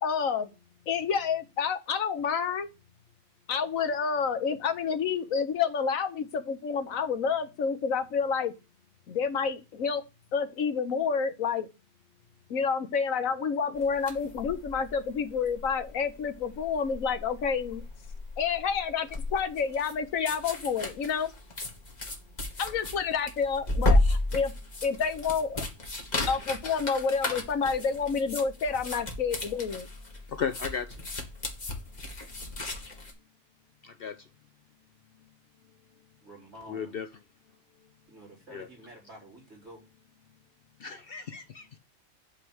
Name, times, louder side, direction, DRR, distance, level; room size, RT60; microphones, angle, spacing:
voice 1, 0.0-0.5 0.9-2.7 3.5-8.5 9.1-10.0 10.3-11.7 12.5-17.8 18.4-21.3 22.6-24.0 24.3-24.5 24.8-25.6 26.3-29.9, left 6 dB, 80° left, 1.4 m, -29 dB
sound 1, 13.8-33.1, left 2 dB, 35° left, 1.5 m, -33 dB
voice 2, 30.3-31.0 33.8-34.2 36.7-37.1 38.5-38.7 40.8-41.8, left 7 dB, 60° left, 0.7 m, -35 dB
voice 3, 36.2-37.0 38.1-39.8, right 1 dB, 65° right, 4.8 m, -49 dB
8.3 x 3.2 x 6.3 m
omnidirectional pair, 1.4 m